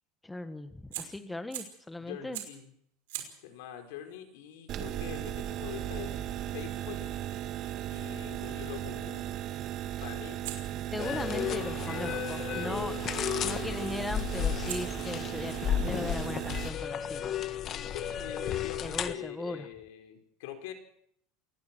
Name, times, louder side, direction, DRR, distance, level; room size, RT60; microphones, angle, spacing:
voice 1, 0.2-2.4 9.9-10.0 10.9-12.9 13.4-17.4 18.8-19.7, left 2 dB, 5° left, 9 dB, 1.4 m, -38 dB
Fire, 0.9-1.9 2.3-2.7 3.1-8.0 10.4-12.5 13.8-14.1 14.7-18.1, right 12 dB, 85° right, 5.4 m, -48 dB
voice 2, 2.0-2.7 3.4-6.2 6.5-7.2 7.9-9.4 9.8-10.4 17.9-20.7, left 10 dB, 75° left, 5 dB, 4.8 m, -44 dB
sound 1, 4.7-16.7, right 11 dB, 45° right, 2.2 m, -36 dB
sound 2, 11.0-19.1, left 10 dB, 35° left, 1.4 m, -34 dB
26.0 x 19.5 x 6.1 m, 0.72 s
supercardioid pair, 135°, 0 cm